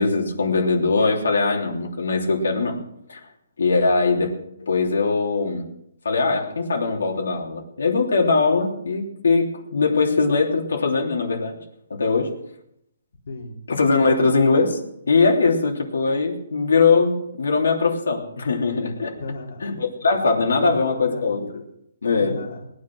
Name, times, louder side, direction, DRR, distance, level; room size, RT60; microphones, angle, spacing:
voice 1, 0.0-2.8 3.1-3.2 3.6-4.3 4.6-5.6 6.0-11.6 11.9-12.3 13.7-14.8 15.1-19.1 19.6-21.6 22.0-22.4, left 4 dB, 85° left, 1 dB, 3.3 m, -21 dB
voice 2, 13.3-13.6 19.2-19.7 20.3-21.3 22.1-22.7, left 3 dB, 60° left, 0 dB, 2.8 m, -35 dB
19.5 x 9.7 x 6.2 m, 0.77 s
hypercardioid pair, 170°, 0 cm